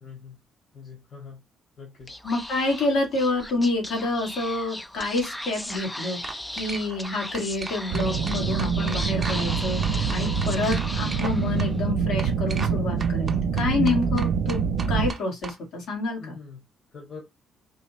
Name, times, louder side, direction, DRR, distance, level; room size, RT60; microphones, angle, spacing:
voice 1, 0.0-0.4 0.7-1.4 1.8-2.2 16.2-16.6 16.9-17.2, left 5 dB, 55° left, 1.8 m, -43 dB
Speech / Whispering, 2.0-11.8, left 1 dB, 10° left, 0.5 m, -37 dB
voice 2, 2.2-6.2 6.5-13.3 13.6-14.6 14.9-16.3, left 2 dB, 75° left, 1.9 m, -28 dB
sound 1, 5.5-5.8 6.2-7.1 7.3-9.6 9.8-11.3 11.6-11.7 12.2-12.7 13.0-15.6, right 4 dB, 35° right, 0.7 m, -37 dB
sound 2, 7.9-15.1, right 6 dB, 85° right, 0.4 m, -25 dB
3.8 x 3.0 x 3.0 m
cardioid pair, 90°, 0 cm